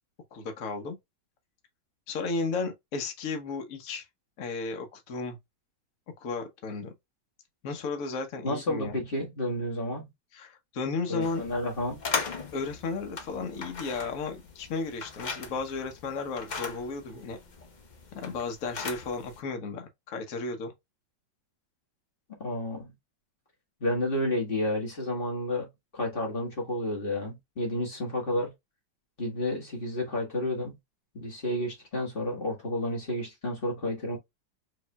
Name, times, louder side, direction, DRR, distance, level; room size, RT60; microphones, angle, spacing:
voice 1, 0.3-1.0 2.1-4.1 4.4-5.4 6.2-6.9 7.6-9.0 10.3-11.5 12.5-17.4 18.1-20.7, left 4 dB, 50° left, 1.2 m, -34 dB
voice 2, 8.4-10.1 11.1-12.0 22.4-22.9 23.8-28.5 29.2-30.8 31.1-34.2, left 1 dB, 30° left, 1.5 m, -31 dB
sound 1, 11.2-19.4, left 4 dB, 90° left, 0.4 m, -39 dB
4.8 x 3.2 x 2.2 m
omnidirectional pair, 2.0 m